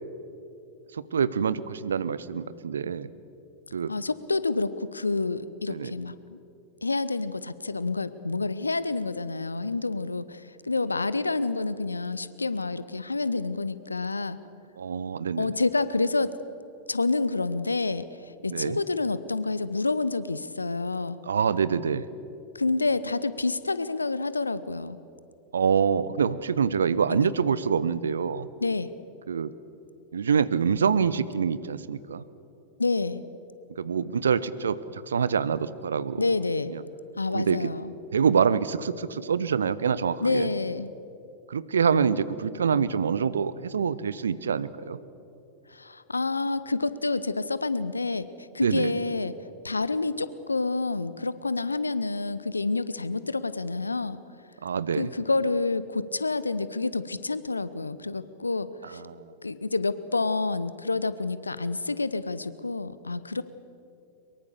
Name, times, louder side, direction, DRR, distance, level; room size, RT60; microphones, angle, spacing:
voice 1, 0.9-3.1 3.7-3.9 5.7-5.9 14.8-15.5 18.5-18.8 21.3-22.1 25.5-28.5 29.3-29.5 30.1-32.2 33.8-36.2 36.7-36.8 37.3-37.6 38.1-40.5 41.5-45.0 48.6-48.9 54.6-55.1 58.9-59.2, right 6 dB, 70° right, 17 dB, 0.8 m, -26 dB
voice 2, 3.9-6.4 6.8-14.4 15.4-16.3 16.9-21.2 22.5-25.0 27.1-27.3 28.6-28.9 32.8-33.2 36.2-36.8 37.2-37.9 40.2-40.9 45.7-49.3 49.6-54.2 55.0-59.0 59.4-63.4, left 3 dB, 80° left, 15 dB, 0.8 m, -28 dB
23.0 x 22.5 x 7.0 m, 2.8 s
figure-of-eight pair, 90°, 0 cm